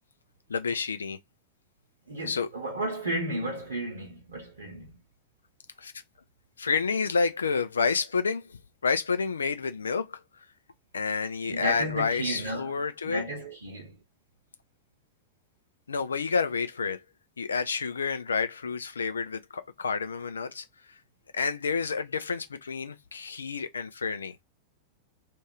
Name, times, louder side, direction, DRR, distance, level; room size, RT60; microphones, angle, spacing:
voice 1, 0.5-1.2 2.3-2.5 5.8-5.9 6.6-10.4 10.9-13.2 15.9-17.0 17.4-21.0 21.3-24.4, left 5 dB, 70° left, 0.5 m, -29 dB
voice 2, 2.1-5.0 11.4-12.8 13.0-14.0, right 1 dB, 70° right, 0.9 m, -33 dB
2.6 x 2.5 x 3.1 m
figure-of-eight pair, 90°, 0 cm